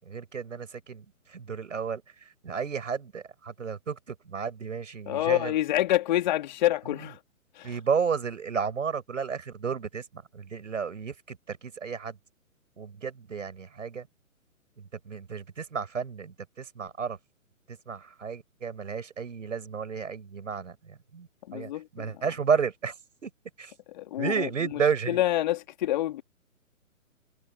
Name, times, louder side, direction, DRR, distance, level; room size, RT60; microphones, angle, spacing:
voice 1, 0.0-5.6 7.6-12.2 12.8-14.1 14.8-17.2 17.7-23.3 23.6-23.7 24.2-25.2, right 6 dB, 60° right, 6.8 m, -32 dB
voice 2, 5.1-7.2 7.5-7.7 21.5-22.2 24.0-24.5 25.1-26.2, left 14 dB, 30° left, 2.6 m, -27 dB
figure-of-eight pair, 135°, 43 cm